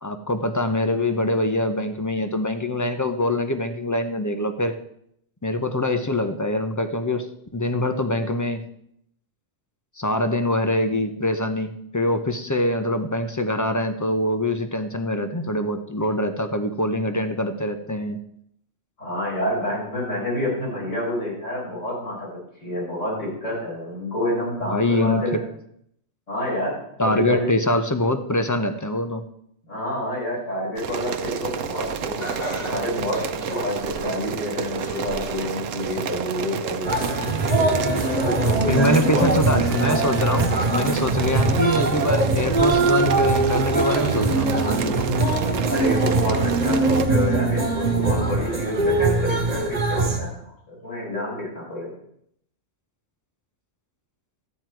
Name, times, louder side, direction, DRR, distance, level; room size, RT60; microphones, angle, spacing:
voice 1, 0.0-4.8 5.4-7.3 7.5-8.6 10.0-18.2 24.7-25.2 27.0-29.2 38.7-45.1, left 1 dB, 20° left, 8 dB, 0.6 m, -24 dB
voice 2, 19.0-22.3 22.6-25.5 26.3-27.5 29.7-32.3 32.6-36.9 37.5-39.3 45.7-51.9, left 1 dB, 75° left, -6 dB, 5.5 m, -28 dB
sound 1, 30.8-47.1, right 7 dB, 90° right, 1.1 m, -30 dB
Laughter, 32.2-34.3 34.8-35.4 35.9-36.0 37.0-37.1, equal, 50° left, 2.5 m, -35 dB
sound 2, 36.8-50.2, right 3 dB, 40° right, 1.6 m, -22 dB
12.5 x 9.2 x 4.6 m, 0.71 s
omnidirectional pair, 1.3 m